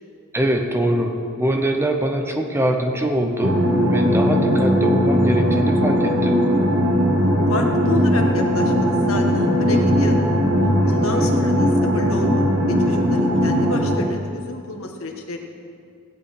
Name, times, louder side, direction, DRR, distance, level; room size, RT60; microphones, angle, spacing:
voice 1, 0.3-3.6 3.9-6.4 10.8-11.4, right 1 dB, 10° right, 3 dB, 0.9 m, -23 dB
sound 1, 3.4-14.0, equal, 75° right, 1.5 m, -18 dB
voice 2, 7.5-10.3 10.9-15.4, left 2 dB, 70° left, 2 dB, 1.5 m, -29 dB
17.5 x 9.4 x 4.4 m, 2.3 s
head